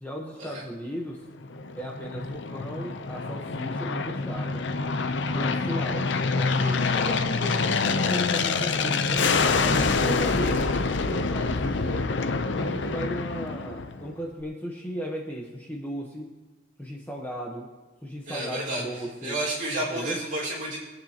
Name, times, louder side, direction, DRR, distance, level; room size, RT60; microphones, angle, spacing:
voice 1, 0.0-1.2 1.8-4.7 5.3-6.1 6.4-10.7 11.1-12.1 12.6-16.3 16.8-17.7 18.0-19.3 19.9-20.2, equal, 10° left, -1 dB, 1.0 m, -36 dB
Aircraft, 1.4-14.1, left 4 dB, 60° left, 0.6 m, -26 dB
voice 2, 18.2-20.8, right 1 dB, 40° right, -6 dB, 4.5 m, -31 dB
22.5 x 9.1 x 2.9 m, 1.3 s
head